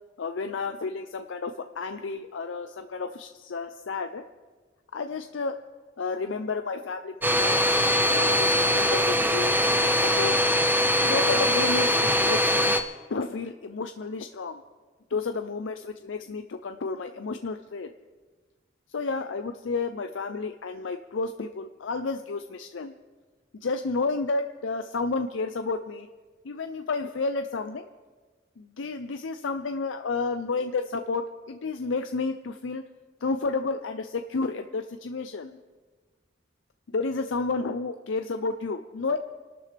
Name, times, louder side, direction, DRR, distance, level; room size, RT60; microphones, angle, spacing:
voice 1, 0.2-4.2 4.9-5.6 6.0-7.6 8.1-10.4 11.0-12.7 13.1-14.6 15.1-17.9 18.9-22.9 23.6-26.1 26.4-27.9 28.6-32.8 33.2-35.6 36.9-39.2, left 4 dB, 90° left, 8 dB, 0.5 m, -31 dB
Domestic sounds home sounds, 7.2-12.8, equal, 10° right, 0.6 m, -22 dB
27.5 x 12.5 x 3.4 m, 1.4 s
head